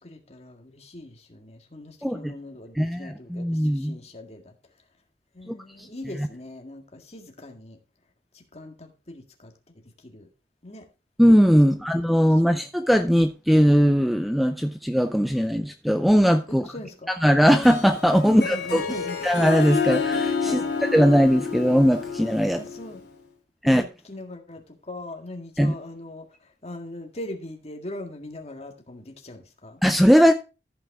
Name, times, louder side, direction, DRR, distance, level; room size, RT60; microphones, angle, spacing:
voice 1, 0.0-4.5 5.3-7.8 8.3-10.3 10.6-10.9 11.7-11.9 12.2-12.7 16.5-17.1 18.2-19.3 20.4-20.9 22.5-23.0 23.6-29.8, left 1 dB, 35° left, 1.8 m, -41 dB
voice 2, 2.0-2.3 2.8-4.0 5.5-5.9 11.2-16.7 17.2-18.8 19.2-20.6 20.9-22.6 23.6-23.8 25.6-25.7 29.8-30.3, equal, ahead, 0.5 m, -19 dB
Harp, 17.5-23.0, left 5 dB, 70° left, 2.5 m, -29 dB
14.0 x 5.9 x 3.5 m
head